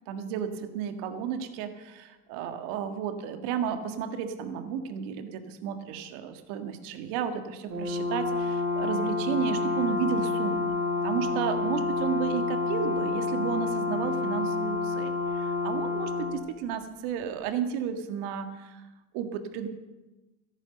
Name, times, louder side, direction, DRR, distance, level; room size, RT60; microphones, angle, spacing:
voice 1, 0.1-10.7 11.0-18.8 19.1-19.7, right 8 dB, 55° right, 8 dB, 1.8 m, -33 dB
Brass instrument, 7.7-16.4, left 3 dB, 40° right, 4.5 m, -29 dB
13.5 x 11.5 x 6.8 m, 1.1 s
hypercardioid pair, 95°, 45 cm